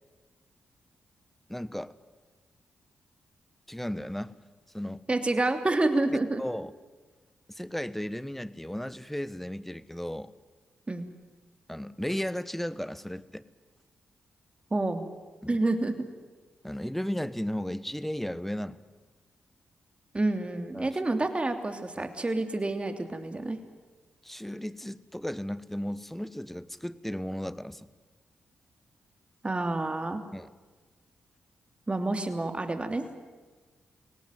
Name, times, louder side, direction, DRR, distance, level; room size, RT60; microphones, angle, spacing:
voice 1, 1.5-1.9 3.7-4.3 4.7-5.0 6.4-6.7 7.5-10.3 11.7-13.4 15.4-15.6 16.6-18.8 20.7-21.0 22.0-22.1 24.2-27.9 30.3-30.5, equal, 5° left, 16 dB, 1.2 m, -35 dB
voice 2, 5.1-6.4 10.9-11.1 14.7-15.0 15.5-15.9 20.1-23.6 29.4-30.2 31.9-33.0, right 2 dB, 30° right, 7 dB, 3.1 m, -28 dB
24.5 x 18.0 x 9.3 m, 1.3 s
supercardioid pair, 40°, 4 cm